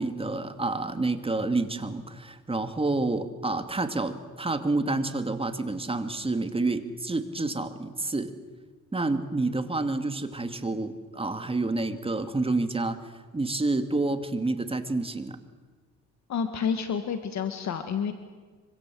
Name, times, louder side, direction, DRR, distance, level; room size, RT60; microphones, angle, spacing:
voice 1, 0.0-8.4 8.9-13.0 13.3-15.4, right 2 dB, 20° right, 8 dB, 2.4 m, -29 dB
voice 2, 16.3-18.1, left 7 dB, 65° left, 8 dB, 1.9 m, -29 dB
26.0 x 25.0 x 7.8 m, 1.4 s
cardioid pair, 90°, 30 cm